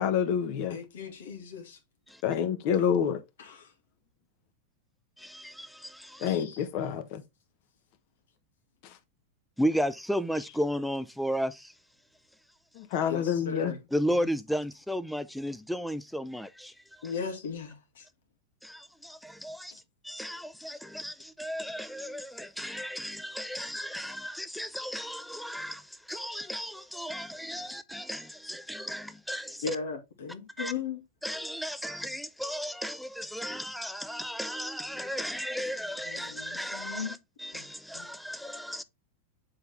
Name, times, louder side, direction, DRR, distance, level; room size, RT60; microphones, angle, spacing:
voice 1, 0.0-0.8 2.2-3.2 6.2-7.2 12.7-13.7, left 8 dB, 50° left, 1.2 m, -27 dB
voice 2, 0.7-1.8 3.4-3.5 6.3-6.6 13.0-13.8 14.2-14.3 17.0-18.1 29.6-31.0 36.1-37.1 37.5-37.7 37.9-38.1, left 5 dB, 90° left, 2.1 m, -37 dB
voice 3, 5.2-6.3 9.6-11.7 13.9-17.0 18.6-29.6 30.6-30.7 31.2-38.8, equal, ahead, 0.5 m, -34 dB
7.3 x 3.9 x 3.3 m
supercardioid pair, 135°, 0 cm